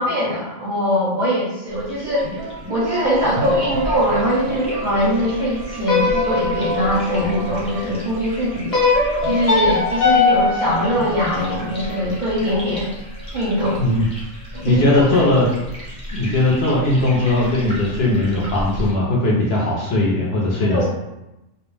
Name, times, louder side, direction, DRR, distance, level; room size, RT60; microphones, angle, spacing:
voice 1, 0.0-8.7 9.2-12.9 13.3-13.8 14.5-15.2 20.7-20.9, equal, 50° right, -8 dB, 0.6 m, -22 dB
sound 1, 1.7-18.9, equal, 10° left, 0.5 m, -35 dB
sound 2, 2.0-13.7, right 3 dB, 85° right, 1.0 m, -31 dB
sound 3, 5.8-8.0 8.7-11.8, left 4 dB, 40° left, 0.9 m, -20 dB
voice 2, 14.6-15.5 16.1-20.9, left 2 dB, 65° left, -4 dB, 0.7 m, -18 dB
2.4 x 2.0 x 3.1 m, 0.96 s
omnidirectional pair, 1.4 m